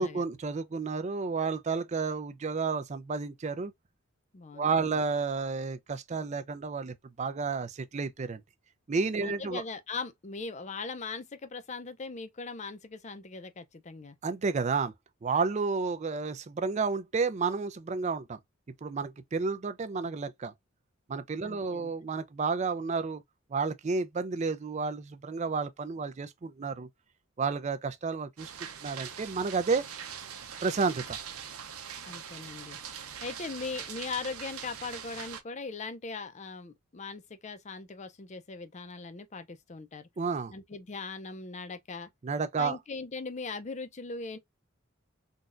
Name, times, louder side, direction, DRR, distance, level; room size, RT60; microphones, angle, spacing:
voice 1, 0.0-3.7 4.5-8.4 8.9-9.6 14.2-14.9 15.2-18.4 18.8-20.5 21.1-23.2 23.5-26.9 27.4-28.5 28.8-29.9 30.6-31.2 40.2-40.5 42.2-42.8, right 4 dB, 35° right, 0.4 m, -31 dB
voice 2, 4.3-5.0 9.2-14.2 21.4-21.9 32.1-32.8 33.2-40.1 40.5-42.1 42.6-44.4, left 4 dB, 35° left, 0.5 m, -40 dB
sound 1, 28.4-35.4, right 8 dB, 90° right, 0.6 m, -42 dB
3.9 x 2.3 x 2.5 m
head